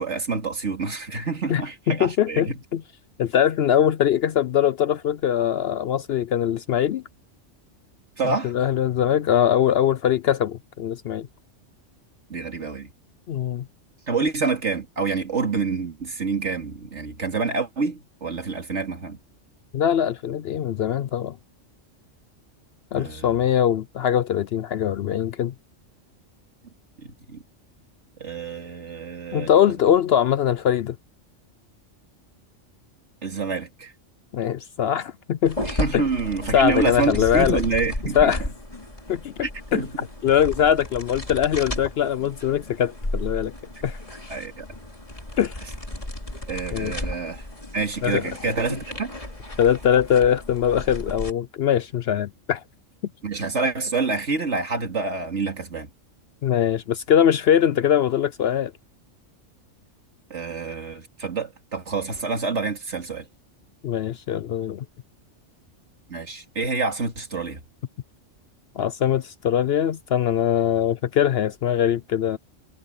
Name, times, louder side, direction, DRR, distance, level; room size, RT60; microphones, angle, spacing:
voice 1, 0.0-2.6 8.2-8.5 12.3-12.9 14.1-19.2 23.0-23.4 27.0-27.4 28.2-29.5 33.2-33.9 35.6-38.4 39.4-39.9 44.3-44.7 46.5-47.5 47.7-49.1 53.2-55.9 60.3-63.3 66.1-67.6, right 4 dB, 65° right, 3.0 m, -27 dB
voice 2, 1.9-2.8 3.2-7.0 8.4-11.3 13.3-13.7 19.7-21.4 22.9-25.5 29.3-31.0 34.3-35.7 35.9-36.0 36.5-37.6 38.1-38.4 39.1-39.8 40.2-43.5 43.8-44.0 45.4-45.6 46.7-46.9 48.0-48.5 49.6-52.6 56.4-58.7 63.8-64.8 68.8-72.4, left 9 dB, 65° left, 0.7 m, -22 dB
sound 1, 35.5-51.3, left 1 dB, 25° left, 3.0 m, -34 dB
omnidirectional pair, 1.3 m